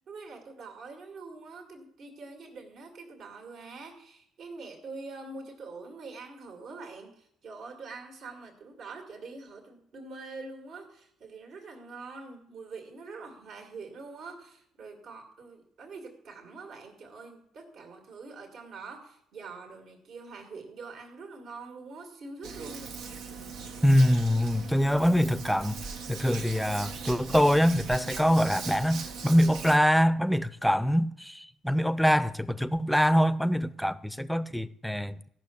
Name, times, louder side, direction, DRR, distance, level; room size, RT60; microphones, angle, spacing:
voice 1, 0.1-23.0, right 3 dB, 65° right, 2.3 m, -44 dB
Hands, 22.4-29.8, right 5 dB, 80° right, 1.3 m, -40 dB
voice 2, 23.8-25.8 26.1-35.3, equal, ahead, 0.6 m, -24 dB
14.0 x 5.9 x 8.5 m
supercardioid pair, 75°, 0 cm